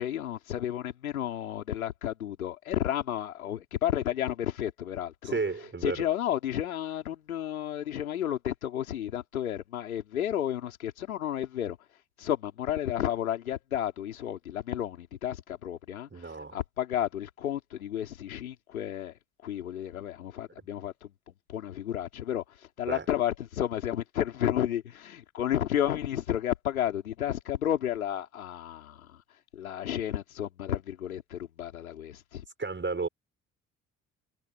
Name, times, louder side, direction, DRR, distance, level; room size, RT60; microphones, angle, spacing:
voice 1, 0.0-5.4 5.8-11.8 12.2-29.2 29.5-32.4, left 11 dB, 85° left, 4.3 m, -32 dB
voice 2, 5.2-6.0 16.1-16.6 22.9-23.1 32.6-33.1, right 4 dB, 25° right, 5.7 m, -32 dB
figure-of-eight pair, 45°, 41 cm